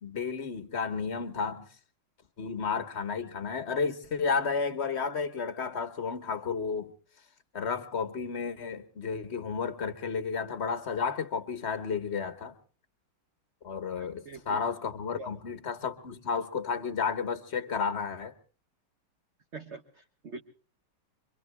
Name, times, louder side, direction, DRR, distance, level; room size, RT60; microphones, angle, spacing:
voice 1, 0.0-1.6 2.4-6.9 7.5-12.5 13.6-18.3, left 5 dB, 35° left, 1.4 m, -32 dB
voice 2, 14.0-14.6 15.2-15.3 19.5-20.4, right 3 dB, 35° right, 1.5 m, -44 dB
27.0 x 24.0 x 2.2 m
omnidirectional pair, 2.3 m